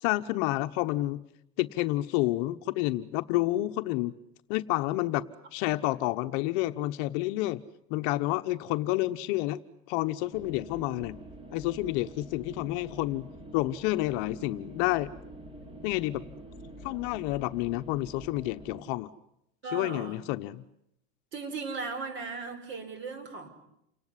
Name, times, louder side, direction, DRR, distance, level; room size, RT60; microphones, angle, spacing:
voice 1, 0.0-1.2 1.6-4.1 4.5-5.3 5.5-7.6 7.9-9.6 9.9-11.2 11.5-13.3 13.5-15.1 15.8-16.2 16.8-19.1 19.7-20.6, left 17 dB, 50° left, 10 dB, 1.0 m, -29 dB
sound 1, 10.3-18.8, right 1 dB, 15° right, 3.6 m, -46 dB
voice 2, 19.6-20.2 21.3-23.5, right 4 dB, 35° right, 10 dB, 5.4 m, -37 dB
29.0 x 18.5 x 9.9 m, 0.77 s
supercardioid pair, 160°, 34 cm